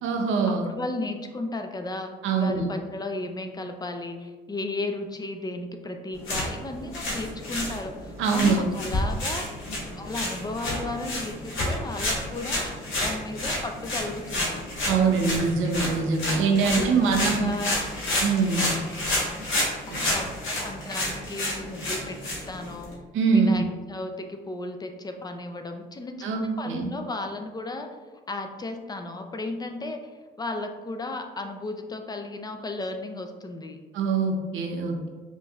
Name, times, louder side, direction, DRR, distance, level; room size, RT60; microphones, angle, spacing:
voice 1, 0.0-0.7 2.2-2.7 8.2-8.6 14.9-17.5 18.2-18.8 19.9-20.2 23.1-23.6 26.2-26.9 33.9-35.1, right 5 dB, 85° right, 2 dB, 0.6 m, -23 dB
voice 2, 0.6-9.4 9.9-12.6 13.0-14.6 16.6-17.8 20.1-22.9 23.3-26.3 26.6-27.9 28.3-30.1 30.4-33.8, left 2 dB, 20° left, 5 dB, 0.4 m, -34 dB
sound 1, 6.1-22.9, left 1 dB, 75° left, 1.2 m, -30 dB
4.9 x 2.6 x 2.3 m, 1.3 s
cardioid pair, 90°, 20 cm